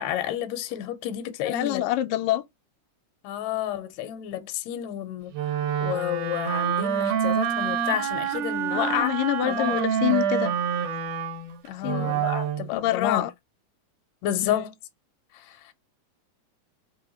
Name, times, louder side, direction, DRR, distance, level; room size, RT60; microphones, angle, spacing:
voice 1, 0.0-1.8 3.2-9.1 9.5-9.8 11.7-13.3 14.2-14.7 15.3-15.7, left 11 dB, 70° left, 1.9 m, -30 dB
voice 2, 1.4-2.4 8.7-10.5 11.8-12.2 12.7-13.3 14.4-14.6, left 13 dB, 85° left, 2.2 m, -26 dB
Wind instrument woodwind instrument, 5.3-12.7, right 7 dB, 75° right, 2.2 m, -27 dB
4.6 x 3.4 x 2.8 m
omnidirectional pair, 3.8 m